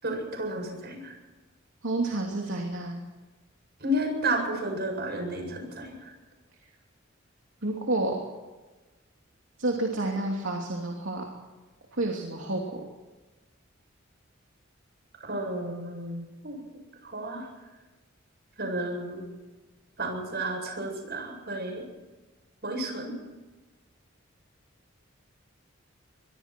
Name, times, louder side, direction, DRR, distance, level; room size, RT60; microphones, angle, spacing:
voice 1, 0.0-1.1 3.8-6.1 15.3-16.6 17.0-17.5 18.6-19.3 20.0-21.8 22.6-23.1, right 1 dB, 55° right, 2 dB, 7.8 m, -32 dB
voice 2, 1.8-3.0 7.6-8.2 9.6-11.3 11.9-12.8, right 2 dB, 70° right, 0 dB, 3.0 m, -29 dB
25.0 x 22.5 x 4.6 m, 1.2 s
head